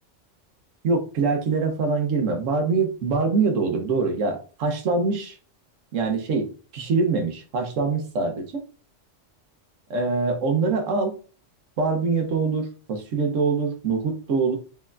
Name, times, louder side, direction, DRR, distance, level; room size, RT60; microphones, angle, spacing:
voice 1, 0.8-5.4 5.9-6.5 6.7-8.5 9.9-11.1 11.8-14.6, right 4 dB, 85° right, 4 dB, 1.2 m, -24 dB
4.5 x 4.1 x 2.4 m, 0.37 s
omnidirectional pair, 1.3 m